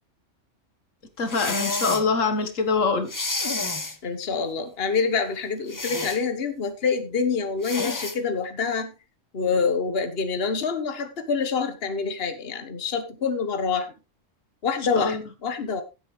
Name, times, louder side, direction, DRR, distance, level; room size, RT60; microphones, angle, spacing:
voice 1, 1.2-3.1 14.9-15.2, left 4 dB, 85° left, 8 dB, 1.9 m, -24 dB
sound 1, 1.3-2.1 3.1-4.0 5.7-6.2 7.6-8.2, left 3 dB, 20° left, 0.8 m, -29 dB
voice 2, 4.0-8.9 9.3-13.9 14.6-15.8, left 5 dB, 50° left, 8 dB, 1.5 m, -26 dB
16.0 x 8.4 x 3.3 m, 0.27 s
omnidirectional pair, 1.3 m